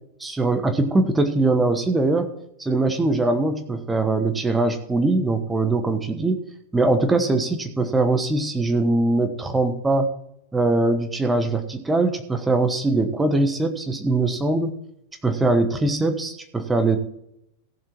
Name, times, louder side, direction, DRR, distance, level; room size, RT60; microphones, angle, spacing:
voice 1, 0.2-2.3 2.6-6.4 6.7-10.1 10.5-14.7 15.2-17.0, right 2 dB, 10° right, 6 dB, 1.2 m, -21 dB
15.0 x 7.4 x 4.5 m, 0.75 s
figure-of-eight pair, 90°, 0 cm